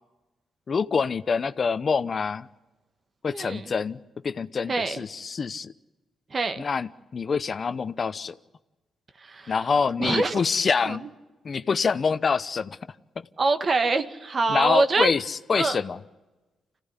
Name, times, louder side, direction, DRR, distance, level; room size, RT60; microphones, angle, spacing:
voice 1, 0.7-2.5 3.2-4.0 4.2-5.7 6.6-8.4 9.5-11.1 11.4-12.8 13.2-13.3 14.5-16.0, left 5 dB, 50° left, 13 dB, 0.8 m, -26 dB
voice 2, 3.3-3.7 4.7-5.0 6.3-6.6 9.2-9.6 10.0-10.4 10.8-11.0 13.4-15.1 15.5-15.8, right 3 dB, 45° right, 9 dB, 1.6 m, -25 dB
26.5 x 16.5 x 9.8 m, 1.1 s
supercardioid pair, 55°, 0 cm